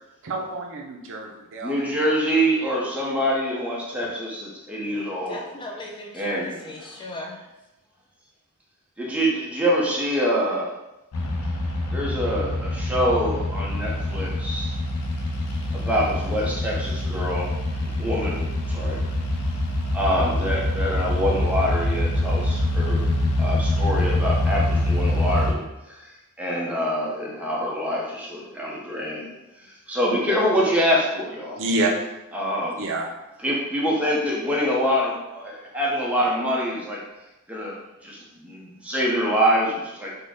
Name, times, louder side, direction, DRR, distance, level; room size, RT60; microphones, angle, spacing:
voice 1, 0.2-1.9 31.6-31.9 32.8-33.1, right 2 dB, 60° right, 0 dB, 0.5 m, -27 dB
voice 2, 1.6-5.4 6.1-7.0 9.0-10.7 11.9-14.7 15.7-17.5 17.8-19.0 19.9-23.1 23.4-25.6 25.9-26.1 26.4-29.3 29.9-31.6 32.3-32.9 33.4-37.0 37.5-37.8 38.0-40.2, equal, 5° right, -4 dB, 0.7 m, -25 dB
voice 3, 5.3-7.4, left 2 dB, 20° left, 0 dB, 0.3 m, -36 dB
sound 1, 11.1-25.5, left 1 dB, 85° left, 0.6 m, -25 dB
3.7 x 2.1 x 3.6 m, 0.97 s
head